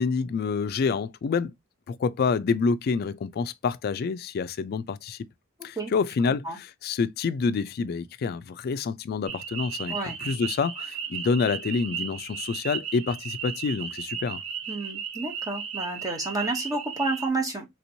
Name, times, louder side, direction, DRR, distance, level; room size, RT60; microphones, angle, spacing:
voice 1, 0.0-1.5 1.9-5.3 5.6-14.4, left 5 dB, 45° left, 0.3 m, -27 dB
voice 2, 6.2-6.6 9.9-10.1 14.7-17.7, right 2 dB, 15° right, 0.8 m, -30 dB
sound 1, 9.3-17.3, right 7 dB, 75° right, 0.7 m, -35 dB
3.3 x 2.9 x 2.6 m
head